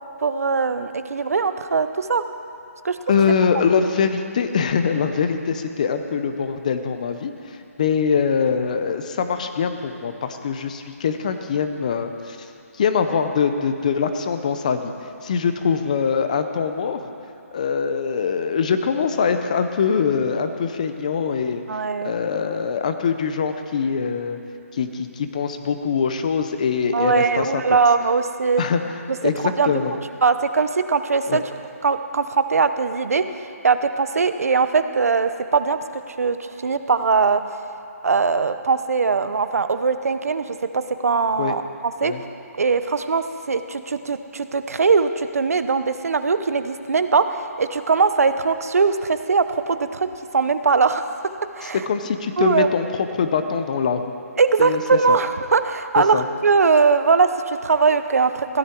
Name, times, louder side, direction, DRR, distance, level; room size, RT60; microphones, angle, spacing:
voice 1, 0.2-2.2 2.8-3.0 21.7-22.5 26.9-28.6 29.6-29.7 30.2-31.4 31.8-35.8 36.1-37.4 38.0-41.6 42.0-42.1 42.6-50.1 50.3-51.1 51.5-51.8 52.4-52.7 54.4-58.6, right 5 dB, 70° right, 10 dB, 0.7 m, -20 dB
voice 2, 3.1-17.1 17.5-21.6 22.0-24.4 24.7-27.8 28.6-30.0 31.3-31.4 41.4-41.5 42.0-42.2 51.6-54.0 54.6-55.2 56.0-56.2, left 6 dB, 30° left, 8 dB, 0.6 m, -23 dB
16.0 x 11.5 x 4.5 m, 2.5 s
hypercardioid pair, 170°, 8 cm